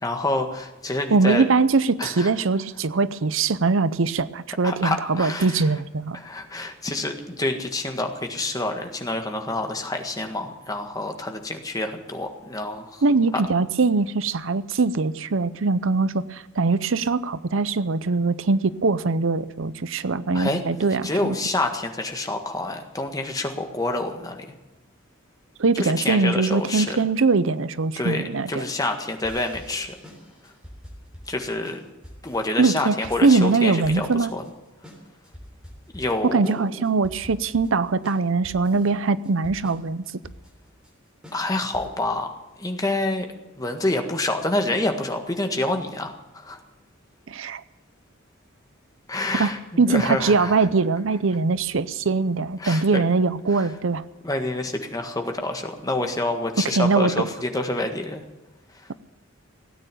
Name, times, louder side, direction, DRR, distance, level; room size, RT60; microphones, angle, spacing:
voice 1, 0.0-1.5 2.0-2.3 4.6-5.6 6.1-13.0 13.3-13.4 20.3-20.6 21.0-24.4 25.8-27.0 28.0-29.9 31.3-31.8 32.2-34.4 35.9-36.8 41.3-42.3 42.6-43.3 43.5-46.6 49.1-50.7 52.6-53.0 53.5-53.7 54.2-58.2, left 2 dB, 15° left, 4 dB, 1.7 m, -27 dB
voice 2, 1.1-6.2 13.0-21.4 25.6-28.6 32.6-33.0 33.2-34.3 36.3-40.0 47.3-47.6 49.4-54.0 56.7-57.3, right 4 dB, 65° right, 15 dB, 0.6 m, -22 dB
sound 1, 29.2-42.1, equal, 5° right, 3.6 m, -45 dB
17.0 x 9.3 x 9.1 m, 1.0 s
head